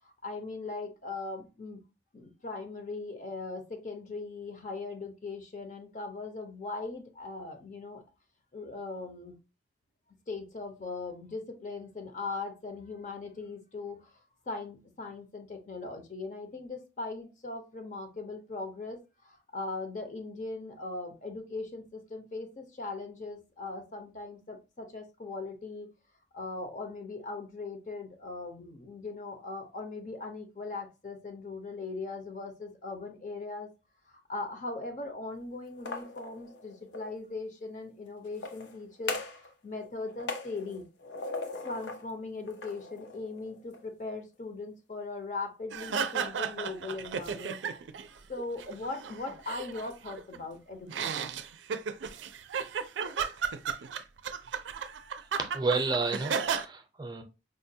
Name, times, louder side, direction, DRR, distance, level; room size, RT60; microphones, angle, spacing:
voice 1, 0.0-1.8 2.1-8.0 8.5-9.4 10.3-14.2 14.5-25.9 26.3-33.7 34.1-40.8 41.6-47.6 48.3-51.3, left 3 dB, 45° left, 0.6 m, -39 dB
sound 1, 35.7-37.1 38.3-39.5 39.8-42.1 42.5-43.8, left 3 dB, 85° left, 0.6 m, -40 dB
crowd laugh, 45.7-48.1 48.4-50.4 50.9-56.6, right 6 dB, 90° right, 0.4 m, -34 dB
voice 2, 55.4-57.2, right 3 dB, 25° right, 0.5 m, -31 dB
4.9 x 2.2 x 2.6 m
head